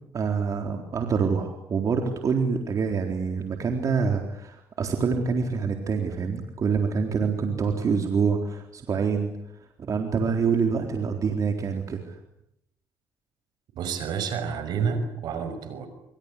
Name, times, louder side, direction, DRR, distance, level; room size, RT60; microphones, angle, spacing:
voice 1, 0.1-9.3 9.8-12.1, right 5 dB, 50° right, 3 dB, 4.0 m, -26 dB
voice 2, 13.7-15.9, right 6 dB, 70° right, 11 dB, 5.9 m, -29 dB
25.5 x 25.0 x 8.5 m, 0.77 s
supercardioid pair, 75°, 7 cm